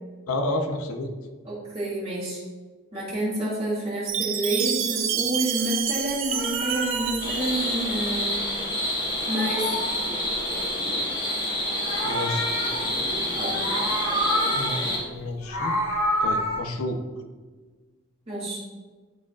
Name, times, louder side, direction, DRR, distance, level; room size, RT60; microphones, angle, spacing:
voice 1, 0.3-1.1 12.0-12.5 14.5-15.8 16.2-17.0, left 1 dB, 85° left, 4 dB, 0.9 m, -30 dB
voice 2, 1.4-2.4 2.9-8.4 9.3-9.8 13.3-13.6 18.3-18.6, right 1 dB, 25° right, -8 dB, 2.2 m, -29 dB
Chime, 4.1-8.2, right 9 dB, 65° right, 0.7 m, -29 dB
Meow, 6.1-8.7 9.0-10.7 11.5-13.2 13.5-14.9 15.3-16.6, equal, 65° left, 1.6 m, -29 dB
sound 1, 7.2-15.0, left 1 dB, 20° left, 1.7 m, -28 dB
12.5 x 5.0 x 2.5 m, 1.4 s
head